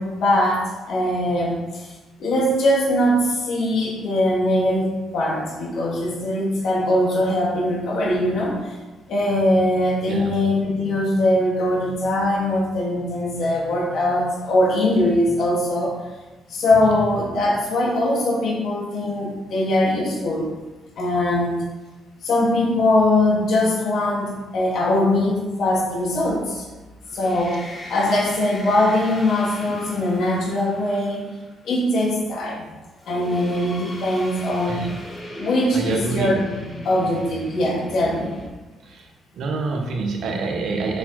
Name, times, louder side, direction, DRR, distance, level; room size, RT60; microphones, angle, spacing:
voice 1, 0.0-1.9 2.2-8.6 9.1-15.9 16.5-20.5 21.0-21.6 22.2-26.7 27.1-31.2 31.6-32.6 33.0-34.9 35.4-36.4 36.8-38.3, left 1 dB, 70° left, -3 dB, 2.7 m, -21 dB
sound 1, 27.0-31.5 33.0-38.5, equal, 30° left, 2.6 m, -37 dB
voice 2, 35.7-36.4 38.8-39.1 39.3-41.0, right 3 dB, 70° right, 2 dB, 1.4 m, -26 dB
7.2 x 6.1 x 4.4 m, 1.2 s
cardioid pair, 90°, 0 cm